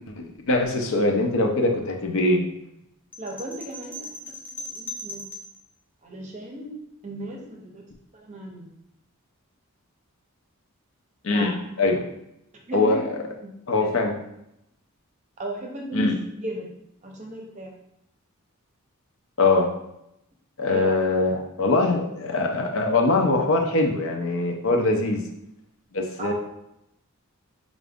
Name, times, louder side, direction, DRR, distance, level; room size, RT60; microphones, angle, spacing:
voice 1, 0.2-2.4 11.2-11.5 11.8-12.0 12.7-13.0 13.7-14.1 15.9-16.1 19.4-19.7 20.6-25.2 25.9-26.3, left 2 dB, 65° left, 2 dB, 0.6 m, -22 dB
sound 1, 3.1-5.6, left 1 dB, 10° left, 0.3 m, -38 dB
voice 2, 3.2-5.2 6.0-6.8 7.0-7.8 8.1-8.7 11.3-11.6 12.7-12.9 13.4-13.5 13.8-13.9 15.4-16.1 16.4-16.7 17.0-17.7 20.7-21.0 26.2-26.3, right 1 dB, 30° right, 0 dB, 0.7 m, -35 dB
4.7 x 2.5 x 3.5 m, 0.81 s
head